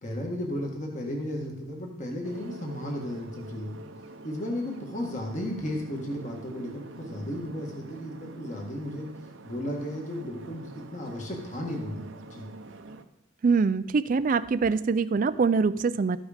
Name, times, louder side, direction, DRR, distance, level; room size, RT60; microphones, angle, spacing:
voice 1, 0.0-3.8 4.2-9.1 9.4-12.5, left 1 dB, 35° left, 0 dB, 1.6 m, -34 dB
sound 1, 2.2-13.0, right 2 dB, 65° right, 0.7 m, -46 dB
voice 2, 13.4-16.2, right 4 dB, 40° right, 14 dB, 0.3 m, -24 dB
13.5 x 6.2 x 5.0 m, 0.84 s
head